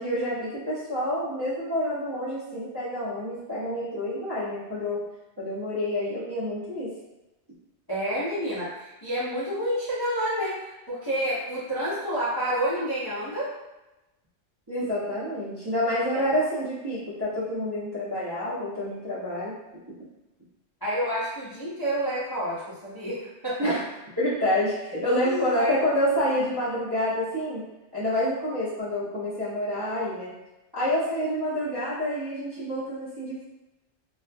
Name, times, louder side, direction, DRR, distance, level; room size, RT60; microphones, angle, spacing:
voice 1, 0.0-5.0 5.4-6.9 14.7-19.5 23.6-23.8 24.2-27.7 27.9-30.3 30.7-33.4, left 1 dB, 30° right, -11 dB, 0.5 m, -28 dB
voice 2, 7.9-13.5 16.1-16.2 20.8-23.8 25.2-25.7, equal, 30° left, -10 dB, 0.4 m, -29 dB
2.3 x 2.1 x 2.6 m, 0.98 s
omnidirectional pair, 1.2 m